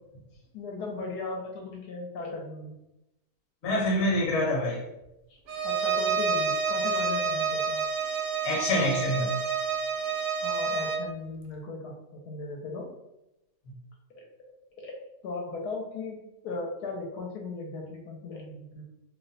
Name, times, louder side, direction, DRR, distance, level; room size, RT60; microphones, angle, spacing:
voice 1, 0.5-2.8 5.3-7.9 10.4-11.9 12.2-12.9 14.1-14.2 14.8-14.9 15.2-16.2 16.4-18.8, left 3 dB, 75° left, 0 dB, 1.1 m, -37 dB
voice 2, 3.6-4.8 8.4-9.3, left 1 dB, 45° left, -2 dB, 1.0 m, -26 dB
Bowed string instrument, 5.5-11.1, right 5 dB, 70° right, 0.9 m, -28 dB
2.8 x 2.1 x 3.8 m, 0.91 s
omnidirectional pair, 1.8 m